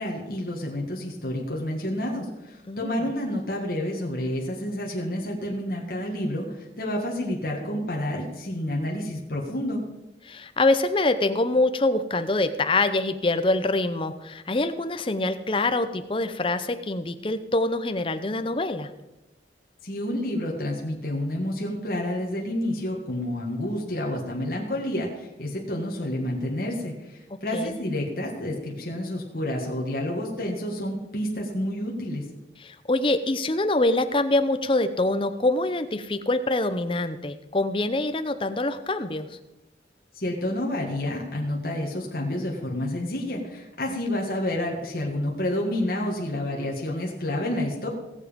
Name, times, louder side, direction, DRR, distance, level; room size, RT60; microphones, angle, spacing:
voice 1, 0.0-9.8 19.8-32.2 40.2-47.9, left 1 dB, 50° left, -2 dB, 1.8 m, -29 dB
voice 2, 2.7-3.1 10.3-18.9 27.5-27.7 32.6-39.4, left 2 dB, 30° left, 10 dB, 0.7 m, -25 dB
17.5 x 7.2 x 5.2 m, 1.0 s
head